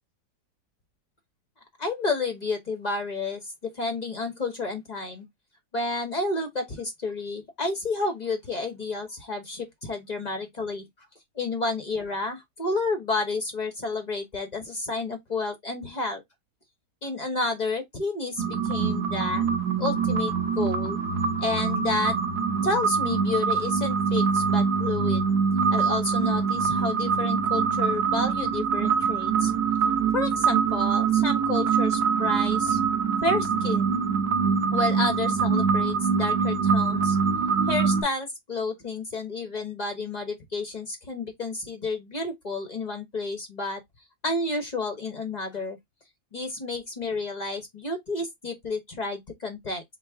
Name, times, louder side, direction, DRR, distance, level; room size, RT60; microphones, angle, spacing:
voice 1, 1.8-5.3 5.7-10.8 11.3-16.2 17.0-19.5 19.8-21.0 21.4-22.2 22.6-25.2 25.7-29.5 30.1-32.8 33.2-34.0 34.7-37.2 37.7-43.8 44.2-45.8 46.3-49.8, left 3 dB, 45° left, 0.5 m, -30 dB
sound 1, 18.4-38.0, right 6 dB, 65° right, 1.3 m, -24 dB
5.0 x 2.1 x 3.3 m
omnidirectional pair, 1.9 m